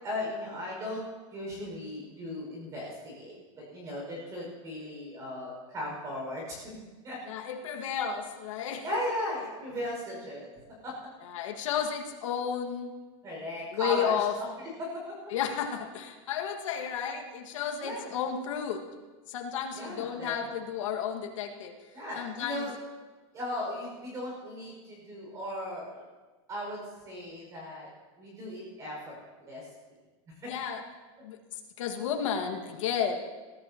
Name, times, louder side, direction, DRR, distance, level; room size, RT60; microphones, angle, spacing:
voice 1, 0.0-1.0 1.3-6.8 7.0-7.2 8.8-10.5 10.8-11.1 13.2-15.3 17.8-18.1 19.7-20.3 21.9-22.7 23.3-26.0 26.5-27.9 28.2-29.7 30.3-30.5, left 1 dB, 20° right, -3 dB, 5.8 m, -37 dB
voice 2, 7.3-8.8 11.2-12.9 13.7-14.3 15.3-18.9 19.3-21.7 22.2-22.7 30.5-30.8 31.2-31.4 31.8-33.2, left 8 dB, 75° left, 2 dB, 2.0 m, -32 dB
22.0 x 14.0 x 3.0 m, 1.3 s
supercardioid pair, 175°, 17 cm